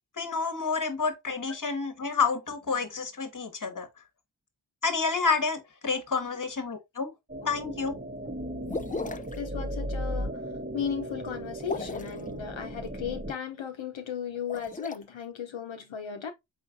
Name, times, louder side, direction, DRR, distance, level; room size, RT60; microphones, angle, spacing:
voice 1, 0.2-3.9 4.8-7.1 7.4-7.9, left 4 dB, 45° left, 1.0 m, -29 dB
sound 1, 7.3-13.3, equal, 20° right, 0.8 m, -36 dB
sound 2, 8.7-9.4 11.6-12.2 14.3-15.0, left 3 dB, 20° left, 0.4 m, -35 dB
voice 2, 9.4-10.3 10.7-16.3, left 7 dB, 90° left, 0.7 m, -35 dB
4.1 x 3.9 x 2.4 m
cardioid pair, 45°, 45 cm